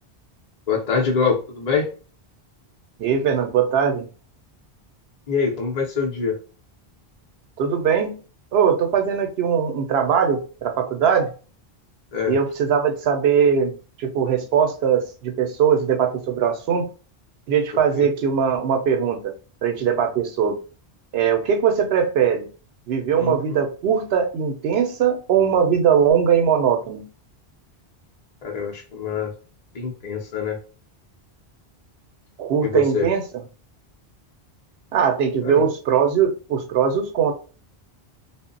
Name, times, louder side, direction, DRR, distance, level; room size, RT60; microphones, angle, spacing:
voice 1, 0.7-1.9 5.3-6.4 12.1-12.3 18.0-18.1 23.2-23.4 28.4-29.3 29.7-30.6 32.6-33.1 35.4-35.7, left 5 dB, 45° left, 0.6 m, -24 dB
voice 2, 3.0-4.1 7.6-8.2 8.5-11.3 12.3-16.9 17.5-19.3 19.6-20.6 21.1-22.5 22.9-27.1 32.4-33.2 34.9-37.3, right 7 dB, 75° right, 0.8 m, -20 dB
2.0 x 2.0 x 3.7 m
omnidirectional pair, 1.1 m